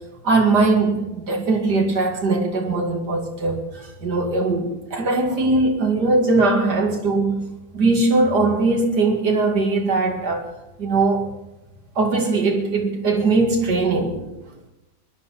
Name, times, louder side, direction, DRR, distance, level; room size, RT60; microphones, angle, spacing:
voice 1, 0.2-3.6 4.0-7.4 7.7-10.4 10.8-11.3 12.0-14.2, right 3 dB, 60° right, 2 dB, 2.7 m, -20 dB
21.0 x 10.5 x 5.7 m, 0.99 s
omnidirectional pair, 2.1 m